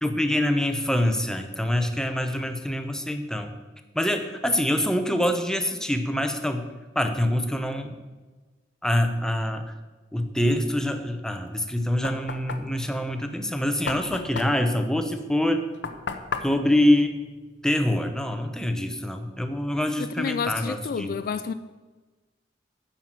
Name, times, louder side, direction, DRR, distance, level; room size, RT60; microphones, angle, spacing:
voice 1, 0.0-3.5 3.9-6.7 6.9-8.0 8.8-9.7 10.1-15.6 16.4-17.2 17.6-21.1, left 1 dB, 5° left, 0.8 m, -25 dB
Knock, 11.5-18.0, left 4 dB, 75° left, 0.8 m, -36 dB
voice 2, 20.0-21.5, left 6 dB, 50° left, 0.3 m, -30 dB
9.4 x 5.8 x 7.4 m
head